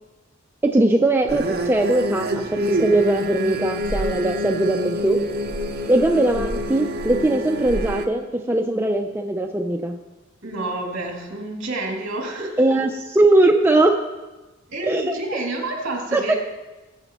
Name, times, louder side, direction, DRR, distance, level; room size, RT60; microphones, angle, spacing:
voice 1, 0.6-5.2 5.9-10.0 12.6-12.9 13.2-14.0 14.9-15.0 16.1-16.3, right 2 dB, 10° right, 3 dB, 0.5 m, -20 dB
sound 1, 1.3-8.1, equal, 50° right, 0.8 m, -27 dB
voice 2, 10.4-12.8 14.7-16.4, right 2 dB, 65° right, -1 dB, 2.7 m, -29 dB
19.5 x 7.9 x 3.0 m, 1.1 s
head